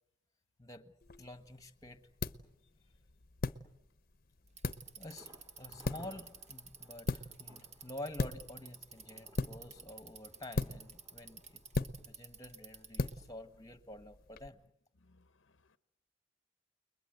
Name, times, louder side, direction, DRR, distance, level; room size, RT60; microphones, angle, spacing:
voice 1, 0.6-2.0 5.0-5.3 5.6-14.6, left 1 dB, 20° left, 1.4 m, -49 dB
sound 1, 1.0-14.5, left 3 dB, 50° left, 0.9 m, -41 dB
Bicycle, 4.5-13.3, right 6 dB, 35° right, 1.3 m, -52 dB
Thunder, 5.1-12.9 13.2-13.3 13.7-13.8, right 1 dB, 15° right, 2.5 m, -62 dB
voice 2, 15.0-15.8, left 2 dB, 90° left, 0.9 m, -68 dB
30.0 x 21.5 x 8.0 m
head